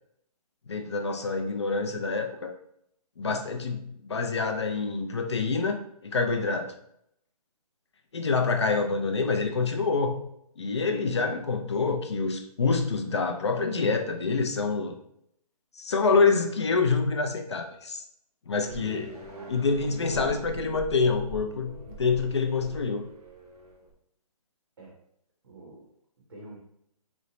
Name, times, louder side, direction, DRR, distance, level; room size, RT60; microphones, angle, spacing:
voice 1, 0.7-2.5 3.2-5.8 6.0-6.7 8.1-10.2 10.6-15.0 15.7-18.0 18.5-19.1 19.5-21.7 22.0-23.0, left 4 dB, 45° left, 4 dB, 0.4 m, -26 dB
voice 2, 3.2-3.5 18.8-19.6 24.8-25.0 25.4-25.9 26.2-26.6, right 2 dB, 45° right, -3 dB, 0.6 m, -46 dB
sound 1, 18.6-23.9, right 3 dB, 85° right, 0.7 m, -43 dB
3.0 x 2.0 x 2.6 m, 0.72 s
hypercardioid pair, 175°, 19 cm